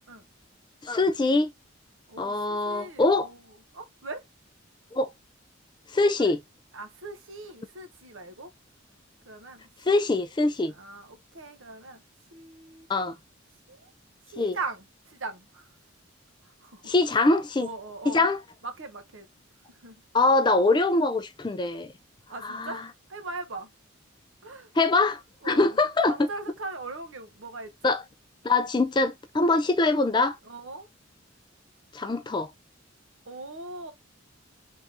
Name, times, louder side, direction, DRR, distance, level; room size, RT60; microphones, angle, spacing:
voice 1, 0.8-1.5 2.2-3.3 4.9-5.1 5.9-6.4 9.9-10.7 12.9-13.1 14.4-14.6 16.8-17.7 18.1-18.4 20.1-21.9 22.4-22.8 24.8-25.2 25.4-26.3 27.8-28.0 28.4-30.4 31.9-32.5, left 3 dB, 20° left, 0.3 m, -23 dB
voice 2, 2.1-3.4 3.7-4.2 6.2-6.3 6.7-8.5 9.3-9.6 10.7-12.0 12.3-12.9 13.7-13.9 14.3-15.7 16.4-16.9 17.6-18.3 18.6-19.3 19.7-20.0 22.3-23.7 24.4-24.7 25.4-25.8 26.0-28.0 30.4-30.9 33.3-33.9, right 3 dB, 70° right, 0.9 m, -40 dB
3.6 x 2.7 x 3.3 m
head